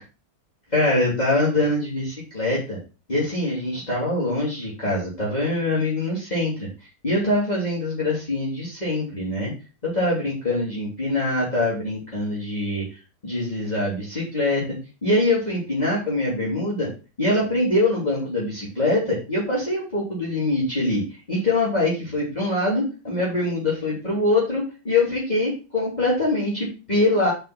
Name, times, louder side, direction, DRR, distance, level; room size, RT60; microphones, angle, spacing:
voice 1, 0.7-2.8 3.1-6.7 7.0-9.5 9.8-12.8 13.2-14.6 15.0-16.9 17.2-27.3, left 2 dB, 25° left, -6 dB, 3.3 m, -23 dB
5.7 x 5.6 x 6.0 m, 0.33 s
omnidirectional pair, 1.8 m